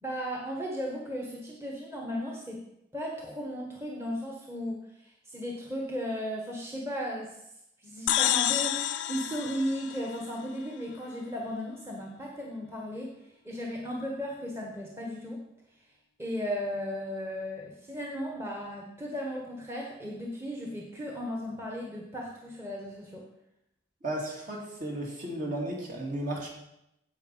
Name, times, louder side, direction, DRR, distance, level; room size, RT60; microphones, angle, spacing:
voice 1, 0.0-2.6 2.9-7.4 7.8-13.2 13.4-15.4 16.2-23.2, equal, 15° right, -1 dB, 1.4 m, -35 dB
sound 1, 8.1-10.7, left 12 dB, 75° left, 0.5 m, -29 dB
voice 2, 24.0-26.5, right 1 dB, 45° right, -1 dB, 2.8 m, -34 dB
10.5 x 8.0 x 5.7 m, 0.85 s
head